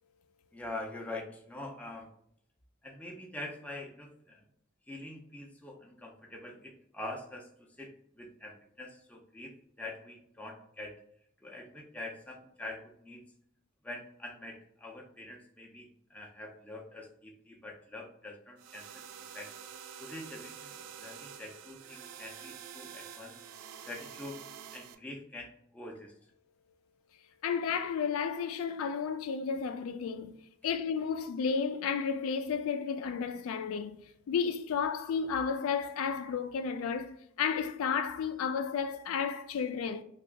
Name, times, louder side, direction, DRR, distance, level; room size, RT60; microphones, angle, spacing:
voice 1, 0.5-2.1 2.8-4.4 4.9-10.9 11.4-13.2 13.8-19.5 20.0-23.3 23.8-24.4 24.7-26.1, left 2 dB, 5° left, 0.5 m, -45 dB
sound 1, 18.6-25.0, right 8 dB, 90° right, 0.4 m, -48 dB
voice 2, 27.4-40.0, left 6 dB, 70° left, 0.3 m, -32 dB
2.8 x 2.4 x 3.3 m
head